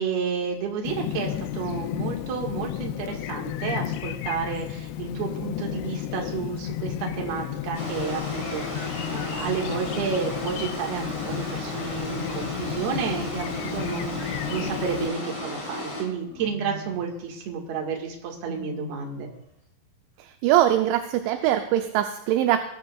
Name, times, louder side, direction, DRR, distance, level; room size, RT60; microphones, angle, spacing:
voice 1, 0.0-19.3, right 6 dB, 60° right, 0 dB, 3.4 m, -31 dB
Chirp tweet, 0.8-15.1, left 12 dB, 90° left, 2.4 m, -33 dB
Wild animals, 6.6-7.6 9.3-10.4 11.9-12.9 14.4-15.5 16.2-17.1 18.4-19.4, left 1 dB, 20° left, 2.9 m, -42 dB
sound 1, 7.7-16.0, left 1 dB, 40° left, 7.2 m, -34 dB
voice 2, 20.2-22.7, right 12 dB, 80° right, 6 dB, 2.9 m, -22 dB
20.5 x 12.0 x 2.4 m, 0.78 s
omnidirectional pair, 5.6 m